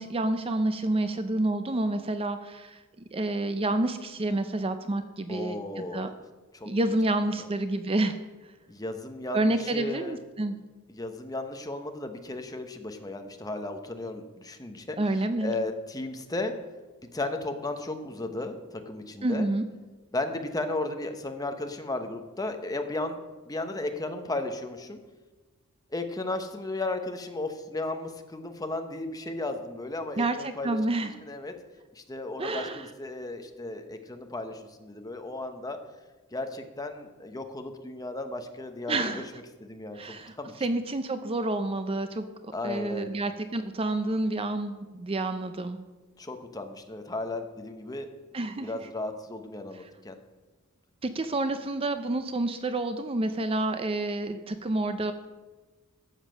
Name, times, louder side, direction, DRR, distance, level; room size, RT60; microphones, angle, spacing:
voice 1, 0.0-2.8 3.1-6.1 6.6-8.2 9.3-10.6 15.0-15.5 19.2-19.6 30.2-31.1 32.4-32.9 38.9-39.2 39.9-40.4 40.6-45.8 48.3-48.7 51.0-55.1, right 2 dB, 25° right, 9 dB, 0.5 m, -29 dB
voice 2, 5.3-6.2 6.5-6.7 7.4-7.5 8.7-10.2 10.9-15.0 15.4-16.5 17.1-19.5 20.1-23.2 23.5-25.0 25.9-31.5 31.9-35.8 36.3-39.2 39.6-40.5 42.5-43.1 46.2-48.1 48.6-50.2, left 2 dB, 15° left, 6 dB, 1.0 m, -35 dB
12.0 x 7.4 x 6.3 m, 1.2 s
head